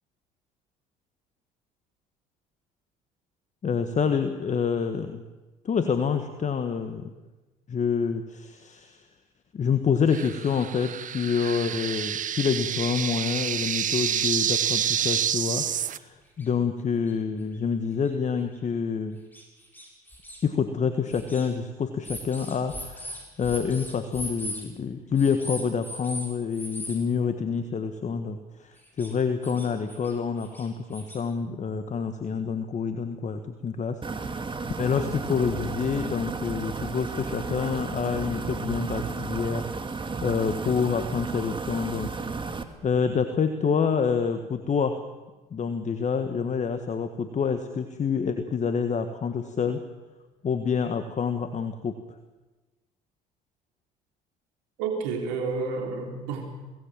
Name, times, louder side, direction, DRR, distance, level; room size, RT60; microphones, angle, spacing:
voice 1, 3.6-5.2 5.6-7.1 7.7-9.1 9.5-19.2 20.4-42.1 42.8-45.1 45.5-49.8 50.4-51.9, left 6 dB, 40° left, 9 dB, 1.6 m, -27 dB
sound 1, 10.1-16.0, right 9 dB, 45° right, 0.8 m, -28 dB
sound 2, 16.0-16.1 16.4-16.5 17.1-17.2 18.1-18.2 18.5-18.6 19.3-20.4 21.1-21.5 22.0-24.6 25.2-26.3 26.5-27.0 28.8-29.1 29.4-30.1 30.4-31.2, left 1 dB, 10° left, 7.9 m, -38 dB
sound 3, 34.0-42.6, right 4 dB, 25° right, 2.3 m, -33 dB
voice 2, 54.8-56.5, right 4 dB, 75° right, 2 dB, 3.7 m, -30 dB
23.5 x 18.5 x 7.5 m, 1.2 s
hypercardioid pair, 60°, 19 cm